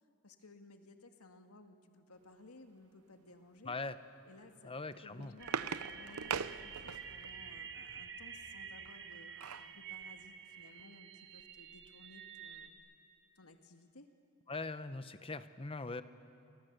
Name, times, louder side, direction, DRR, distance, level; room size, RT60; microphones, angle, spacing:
voice 1, 0.2-3.7 4.3-4.7 5.0-9.3 9.7-12.8 13.4-14.1, left 2 dB, 90° left, 6 dB, 1.9 m, -58 dB
voice 2, 3.6-4.0 4.6-5.3 14.5-16.0, left 3 dB, 25° left, 12 dB, 0.9 m, -41 dB
sound 1, 4.8-7.3 8.9-9.7 10.2-10.3 10.6-10.8, right 6 dB, 85° right, 0.8 m, -41 dB
sound 2, 5.4-12.7, right 6 dB, 55° right, 1.7 m, -49 dB
30.0 x 24.5 x 8.0 m, 2.8 s
head